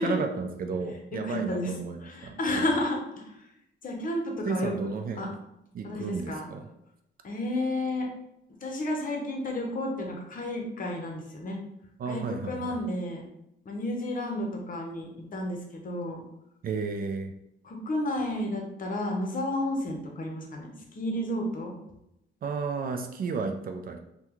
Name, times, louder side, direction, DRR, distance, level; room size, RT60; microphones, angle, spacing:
voice 1, 0.0-2.7 4.4-5.4 5.7-6.7 12.0-12.8 16.6-17.3 22.4-24.0, right 4 dB, 45° right, 6 dB, 0.4 m, -33 dB
voice 2, 1.2-3.4 3.8-4.7 5.2-5.3 5.8-6.5 7.2-8.1 8.6-11.6 12.1-13.2 13.7-16.2 17.6-21.8, left 1 dB, 45° left, 1 dB, 0.8 m, -31 dB
3.4 x 2.2 x 3.0 m, 0.83 s
cardioid pair, 90°, 20 cm